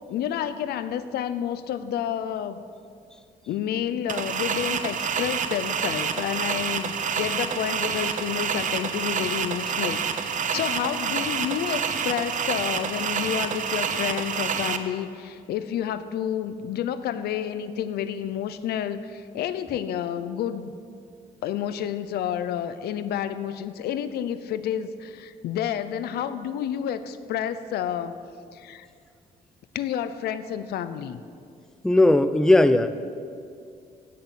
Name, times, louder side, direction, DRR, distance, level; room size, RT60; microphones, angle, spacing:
voice 1, 0.0-2.6 3.5-20.7 21.4-28.2 28.5-28.9 29.7-31.2, left 9 dB, 90° left, 13 dB, 0.7 m, -30 dB
sound 1, 4.1-14.8, right 7 dB, 55° right, 0.9 m, -28 dB
voice 2, 31.8-32.9, left 2 dB, 5° left, 12 dB, 0.6 m, -17 dB
16.0 x 6.9 x 8.1 m, 2.4 s
cardioid pair, 115°, 16 cm